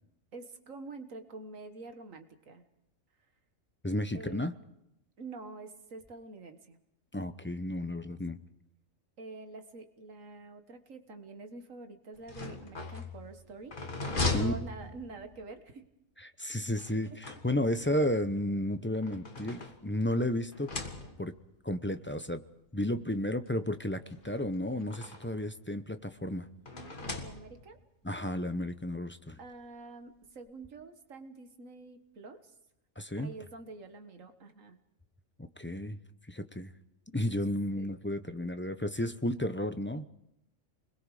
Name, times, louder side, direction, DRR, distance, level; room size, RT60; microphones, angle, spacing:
voice 1, 0.3-2.6 4.1-4.5 5.2-6.8 9.2-13.8 14.2-15.8 17.1-17.2 27.0-27.8 29.4-32.5 33.2-34.8 37.8-37.9, right 3 dB, 75° right, 7 dB, 1.9 m, -47 dB
voice 2, 3.8-4.5 7.1-8.4 14.3-14.5 16.2-20.7 21.2-21.3 21.6-22.4 22.7-26.5 28.0-29.4 33.0-33.3 35.4-36.0 36.3-36.7 37.1-40.1, left 1 dB, 10° left, 9 dB, 0.6 m, -32 dB
sound 1, 12.1-15.5 16.7-17.9 18.7-20.1 20.5-21.5 22.4-22.5 22.8-22.9 24.1-25.4 26.7-27.8, left 2 dB, 40° left, 2.0 m, -38 dB
28.5 x 21.5 x 4.9 m, 0.83 s
omnidirectional pair, 1.4 m